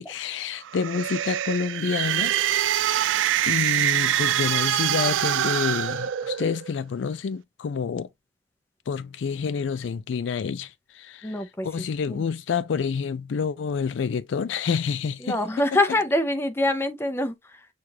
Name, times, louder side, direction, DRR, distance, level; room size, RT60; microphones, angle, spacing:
voice 1, 0.0-2.3 2.7-3.1 3.5-8.1 8.9-11.3 11.6-15.4, left 6 dB, 80° left, 0.4 m, -28 dB
sound 1, 0.6-6.7, right 11 dB, 85° right, 0.3 m, -24 dB
voice 2, 11.2-12.2 15.2-17.7, left 1 dB, 15° left, 0.5 m, -25 dB
6.3 x 2.3 x 2.7 m
head